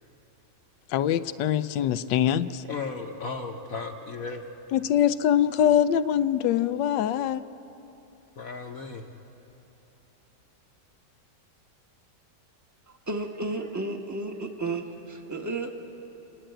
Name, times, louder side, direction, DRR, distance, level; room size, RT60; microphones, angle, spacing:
voice 1, 0.9-2.6 4.7-7.4, left 10 dB, 85° left, 13 dB, 1.3 m, -23 dB
voice 2, 2.7-4.5 8.4-9.0, left 4 dB, 55° left, 1 dB, 1.2 m, -35 dB
voice 3, 13.1-15.7, right 2 dB, 10° right, 4 dB, 0.9 m, -32 dB
30.0 x 10.0 x 8.9 m, 3.0 s
omnidirectional pair, 1.9 m